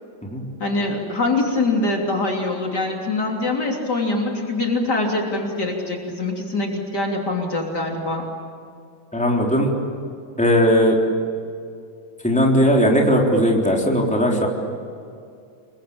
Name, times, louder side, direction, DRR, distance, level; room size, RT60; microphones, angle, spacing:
voice 1, 0.6-8.3, left 2 dB, 55° left, 0 dB, 3.8 m, -23 dB
voice 2, 9.1-9.7 10.4-11.0 12.2-14.5, equal, 5° left, -2 dB, 3.8 m, -18 dB
29.5 x 22.5 x 8.7 m, 2.4 s
omnidirectional pair, 2.2 m